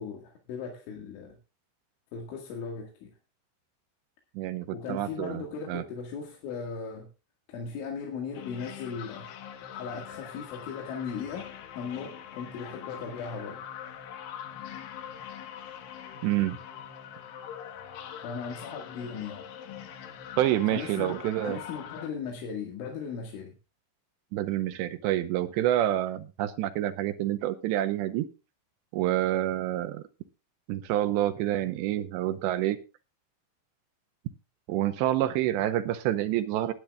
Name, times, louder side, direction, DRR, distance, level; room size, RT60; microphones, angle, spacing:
voice 1, 0.0-1.4 2.1-3.1 4.7-7.1 7.5-9.3 9.7-13.6 18.2-19.5 20.7-21.2 21.4-23.5, left 6 dB, 80° left, 1 dB, 4.4 m, -37 dB
voice 2, 4.4-5.4 5.7-5.8 16.2-16.6 20.4-21.6 24.3-28.3 28.9-30.0 30.7-32.8 34.7-36.7, right 13 dB, 80° right, 10 dB, 2.9 m, -28 dB
sound 1, 8.3-22.1, left 9 dB, 65° left, 2.5 m, -43 dB
20.5 x 10.5 x 2.4 m, 0.29 s
omnidirectional pair, 5.4 m